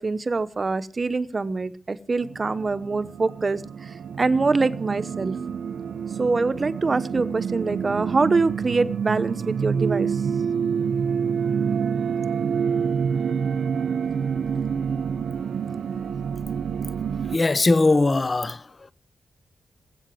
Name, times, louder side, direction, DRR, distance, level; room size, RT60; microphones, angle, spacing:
voice 1, 0.0-5.4 6.2-10.2, right 3 dB, 30° right, 1.0 m, -24 dB
sound 1, 2.2-17.4, right 6 dB, 75° right, 0.8 m, -27 dB
voice 2, 17.2-18.9, left 2 dB, 30° left, 0.9 m, -21 dB
21.0 x 8.8 x 7.7 m
wide cardioid pair, 130°, 0 cm